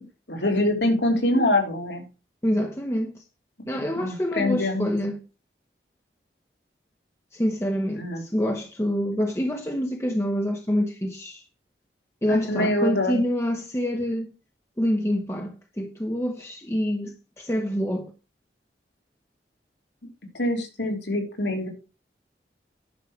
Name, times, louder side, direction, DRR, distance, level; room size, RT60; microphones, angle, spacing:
voice 1, 0.0-2.0 4.0-4.9 8.0-8.2 12.3-13.2 20.4-21.7, left 1 dB, 85° left, 3.3 m, -24 dB
voice 2, 2.4-3.2 3.7-5.2 7.3-11.4 12.2-14.3 14.8-18.1, equal, 15° left, 1.0 m, -26 dB
10.5 x 6.5 x 5.9 m
head